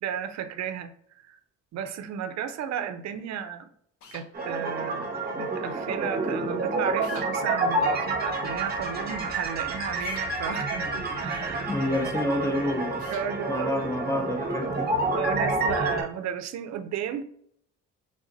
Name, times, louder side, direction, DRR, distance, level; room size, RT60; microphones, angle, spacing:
voice 1, 0.0-0.9 1.3-1.4 1.7-3.7 4.1-11.8 13.1-13.7 15.1-17.2, right 8 dB, 60° right, 11 dB, 0.5 m, -34 dB
sound 1, 4.0-4.3 7.0-7.3 10.0-10.3 13.0-13.3, left 5 dB, 85° left, 0.7 m, -46 dB
sound 2, 4.3-16.0, right 2 dB, 30° right, 0.9 m, -29 dB
voice 2, 11.7-13.0 13.5-14.9, left 1 dB, 10° left, 4 dB, 0.7 m, -28 dB
3.6 x 2.5 x 3.9 m, 0.66 s
cardioid pair, 90°, 30 cm